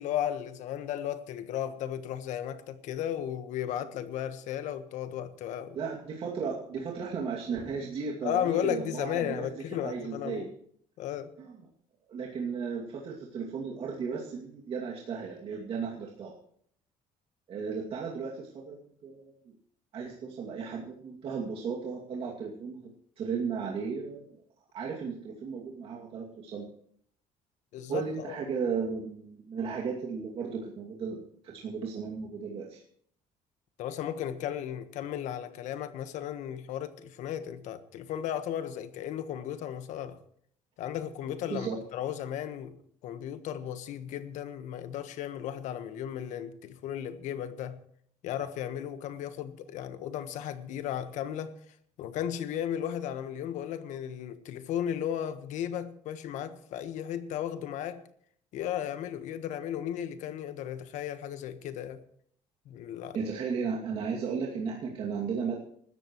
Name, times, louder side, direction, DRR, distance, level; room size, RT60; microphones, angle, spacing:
voice 1, 0.0-5.8 8.2-10.5 11.0-11.3 27.7-28.4 33.8-40.2 40.8-47.8 48.2-51.5 52.0-58.0 58.5-62.0 62.6-63.2, left 10 dB, 70° left, 1.4 m, -35 dB
voice 2, 5.7-10.5 11.4-11.5 12.1-16.3 17.5-19.5 19.9-22.8 23.2-24.4 24.7-26.7 27.9-32.8 41.5-41.8 63.1-65.6, right 5 dB, 45° right, 2.5 m, -35 dB
24.5 x 13.0 x 3.1 m
cardioid pair, 170°, 13 cm